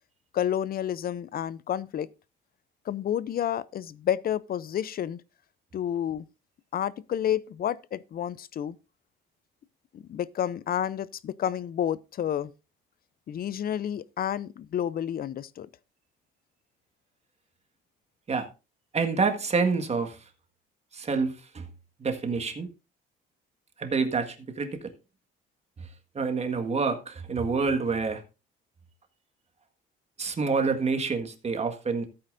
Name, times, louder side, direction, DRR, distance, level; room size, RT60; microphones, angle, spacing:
voice 1, 0.3-2.1 2.9-5.2 5.7-6.3 6.7-8.8 9.9-12.5 13.3-15.7, left 10 dB, 45° left, 0.5 m, -30 dB
voice 2, 18.9-20.2 20.9-21.7 22.0-22.7 23.8-24.9 25.8-25.9 26.1-28.2 30.2-32.1, right 4 dB, 30° right, 1.6 m, -27 dB
14.5 x 8.6 x 2.6 m
cardioid pair, 115°, 21 cm